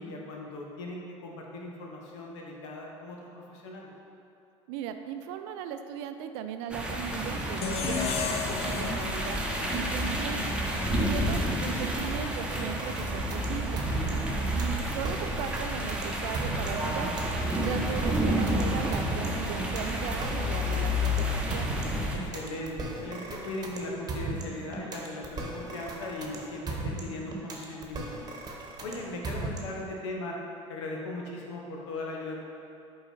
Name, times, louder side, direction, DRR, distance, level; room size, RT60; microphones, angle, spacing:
voice 1, 0.0-3.9 13.8-14.3 22.1-28.4 28.8-30.4 30.7-32.4, left 2 dB, 70° left, -1 dB, 1.2 m, -38 dB
voice 2, 4.7-9.4 9.7-10.4 11.0-13.8 14.5-17.1 17.5-21.7, right 8 dB, 60° right, 8 dB, 0.5 m, -37 dB
sound 1, 6.7-22.2, equal, 5° right, 1.1 m, -30 dB
sound 2, 7.6-10.8, left 6 dB, 40° left, 0.6 m, -34 dB
sound 3, 12.5-29.9, right 2 dB, 25° right, 1.3 m, -37 dB
7.9 x 4.8 x 4.2 m, 2.7 s
figure-of-eight pair, 70°, 16 cm